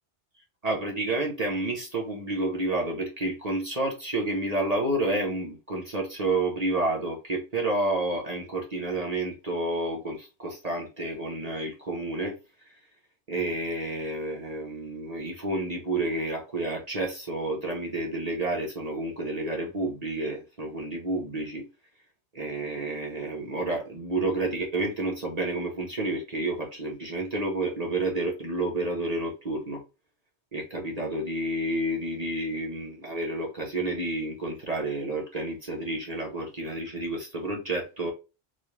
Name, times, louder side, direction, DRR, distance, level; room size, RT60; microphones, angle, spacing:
voice 1, 0.6-12.3 12.7-12.8 13.3-21.6 22.3-29.8 30.5-38.1, right 2 dB, 40° right, 1.1 m, -30 dB
3.8 x 2.4 x 3.2 m
omnidirectional pair, 1.1 m